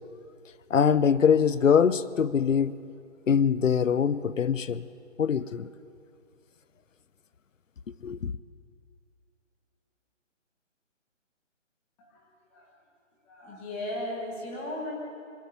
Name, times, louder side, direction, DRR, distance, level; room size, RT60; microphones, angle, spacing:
voice 1, 0.7-2.7 3.3-4.9 5.2-5.7 8.0-8.3, left 7 dB, 80° left, 0.9 m, -23 dB
voice 2, 12.0-12.7 13.2-14.9, left 1 dB, 10° left, 1.3 m, -37 dB
22.5 x 13.0 x 9.3 m
hypercardioid pair, 170°, 38 cm